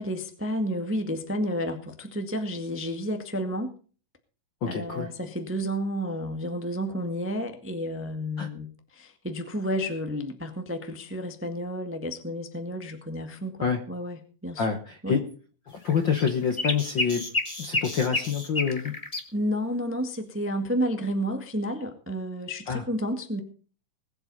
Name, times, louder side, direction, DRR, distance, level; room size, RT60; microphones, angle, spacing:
voice 1, 0.0-3.7 4.6-15.2 19.3-23.4, equal, 10° right, 7 dB, 0.8 m, -31 dB
voice 2, 4.6-5.1 8.4-8.5 13.6-13.8 14.6-15.2 15.7-17.2 17.6-18.9 22.7-22.8, left 6 dB, 55° left, 6 dB, 1.3 m, -27 dB
sound 1, 15.9-19.2, left 2 dB, 20° left, 0.9 m, -29 dB
20.5 x 8.0 x 5.4 m, 0.40 s
omnidirectional pair, 3.7 m